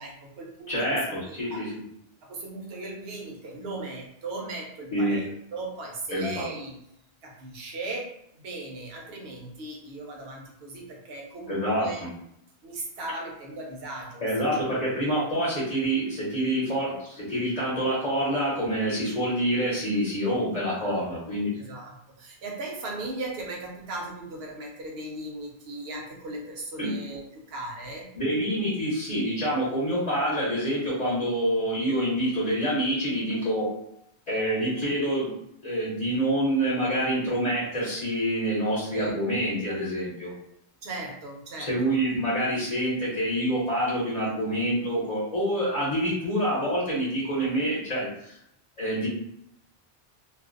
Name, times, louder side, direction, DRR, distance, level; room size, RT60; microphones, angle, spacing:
voice 1, 0.0-1.7 2.2-6.8 7.2-8.2 8.4-12.1 12.6-14.2 14.8-14.9 20.8-21.0 21.6-28.1 38.9-39.2 40.8-42.0, right 2 dB, 70° right, -1 dB, 0.9 m, -38 dB
voice 2, 0.7-1.7 4.9-5.2 6.1-6.5 11.5-12.1 14.2-21.5 26.8-27.0 28.1-33.7 34.3-35.3 35.6-40.3 41.6-48.4 48.8-49.1, equal, 45° left, -8 dB, 0.8 m, -27 dB
2.5 x 2.0 x 2.4 m, 0.74 s
omnidirectional pair, 1.1 m